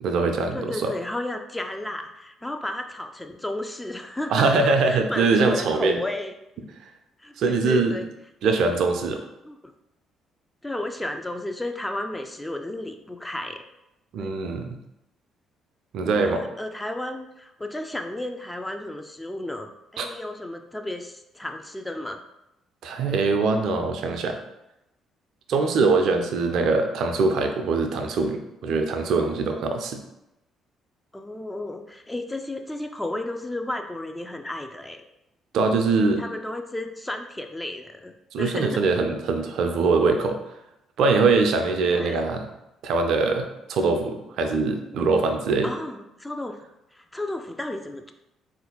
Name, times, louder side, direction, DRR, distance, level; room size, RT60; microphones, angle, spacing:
voice 1, 0.0-0.9 4.3-6.0 7.4-8.0 8.4-9.2 14.1-14.8 15.9-16.4 20.0-20.1 22.8-24.4 25.5-30.0 35.5-36.2 38.3-40.4 41.0-42.5 42.8-45.7, right 4 dB, 60° right, 5 dB, 0.4 m, -22 dB
voice 2, 0.5-6.3 7.2-8.1 8.4-8.6 9.4-9.7 10.6-13.6 14.2-14.3 16.1-22.2 31.1-35.0 36.0-38.8 41.9-42.2 45.6-46.6 46.9-48.1, left 1 dB, 10° left, 5 dB, 0.3 m, -33 dB
3.8 x 2.5 x 2.8 m, 0.89 s
figure-of-eight pair, 45°, 0 cm